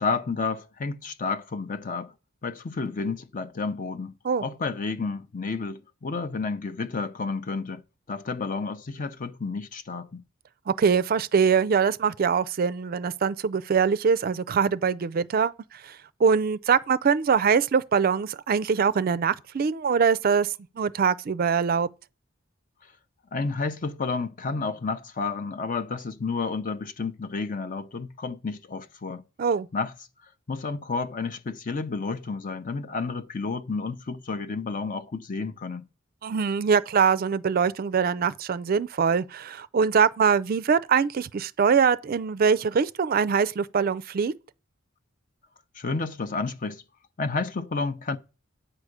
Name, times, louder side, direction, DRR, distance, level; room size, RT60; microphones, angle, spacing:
voice 1, 0.0-2.1 2.4-4.1 4.4-7.8 8.1-10.2 23.3-29.2 29.7-29.9 30.5-35.9 45.8-46.8 47.2-48.2, left 4 dB, 40° left, 0.6 m, -31 dB
voice 2, 10.7-21.9 29.4-29.7 36.2-44.3, right 6 dB, 45° right, 0.4 m, -23 dB
8.9 x 4.8 x 6.5 m
head